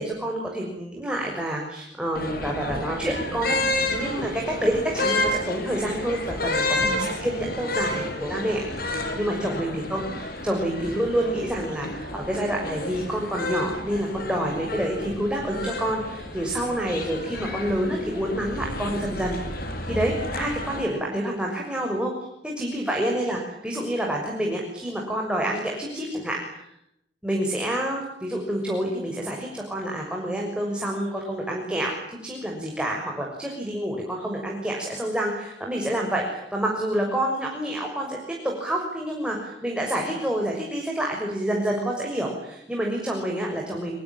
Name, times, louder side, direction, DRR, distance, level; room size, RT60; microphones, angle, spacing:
voice 1, 0.0-3.6 3.9-6.9 7.2-22.1 22.4-26.4 27.2-38.2 38.4-44.0, right 1 dB, 5° right, 0 dB, 6.5 m, -28 dB
sound 1, 2.1-20.8, left 1 dB, 60° left, 5.5 m, -30 dB
25.5 x 24.5 x 9.0 m, 0.77 s
head